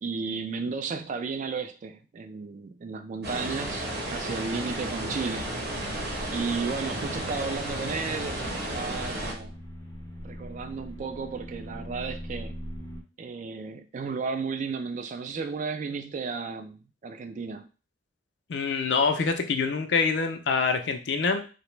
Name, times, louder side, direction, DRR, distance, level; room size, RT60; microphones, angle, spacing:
voice 1, 0.0-5.5 5.8-6.1 6.3-9.5 10.2-12.6 13.2-17.7, right 5 dB, 45° right, 0.3 m, -34 dB
sound 1, 3.2-9.3, right 1 dB, 65° right, 0.8 m, -33 dB
sound 2, 6.0-13.0, equal, 20° left, 0.5 m, -42 dB
voice 2, 18.5-21.5, left 4 dB, 75° left, 0.5 m, -25 dB
2.8 x 2.1 x 3.1 m
head